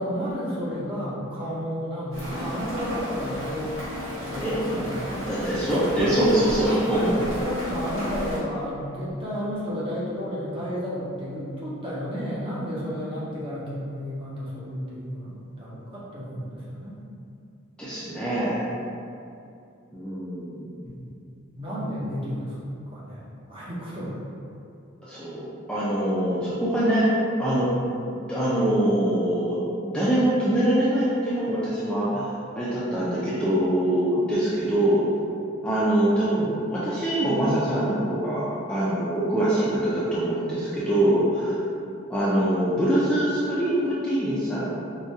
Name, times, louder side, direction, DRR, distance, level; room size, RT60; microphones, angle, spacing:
voice 1, 0.0-3.8 4.1-5.3 5.7-6.2 7.0-17.0 20.8-21.1 21.5-22.6 22.9-24.2, equal, 25° right, -7 dB, 0.7 m, -32 dB
Rain, 2.1-8.4, equal, 70° right, 1.5 m, -33 dB
voice 2, 5.3-7.1 17.8-18.7 19.9-20.7 25.0-25.4 25.7-27.1 27.4-27.7 28.1-35.0 35.6-38.4 38.7-41.6 42.1-44.8, right 1 dB, 5° left, -11 dB, 0.4 m, -24 dB
4.8 x 2.2 x 2.7 m, 2.5 s
head